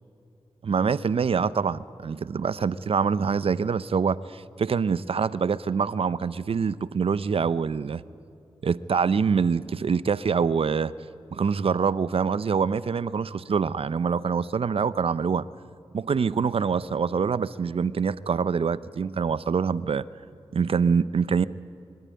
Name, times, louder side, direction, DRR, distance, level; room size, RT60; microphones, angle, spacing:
voice 1, 0.6-8.0 8.6-10.9 11.3-15.5 15.9-20.0 20.5-21.5, right 6 dB, 65° right, 18 dB, 0.6 m, -25 dB
24.0 x 13.0 x 9.5 m, 2.6 s
cardioid pair, 50°, 11 cm